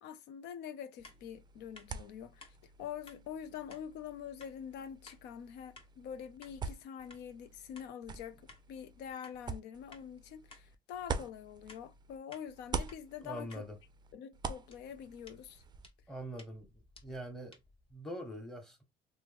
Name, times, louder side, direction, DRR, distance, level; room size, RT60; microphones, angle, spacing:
voice 1, 0.0-8.4 8.7-13.7 14.1-15.6, left 8 dB, 85° left, 0.5 m, -45 dB
sound 1, 1.0-1.2 1.7-1.9 2.4-2.5 3.1-3.2 3.7-3.8 4.4-4.5 5.1-5.2 5.8-5.9 6.4-6.6 7.1-7.2 7.7-7.9 8.5-8.6 9.2-9.4 9.9-10.0 10.5-10.6 11.1-11.2 11.7-11.8 12.3-12.5 12.9-13.0 13.5-13.6 14.7-17.9, left 3 dB, 35° left, 1.0 m, -57 dB
sound 2, 1.0-12.2 12.5-15.9, right 5 dB, 25° right, 0.4 m, -45 dB
voice 2, 13.2-13.8 16.1-16.7 17.0-17.6 17.9-18.8, equal, 5° left, 1.0 m, -43 dB
3.0 x 2.1 x 3.3 m
cardioid pair, 110°, 17 cm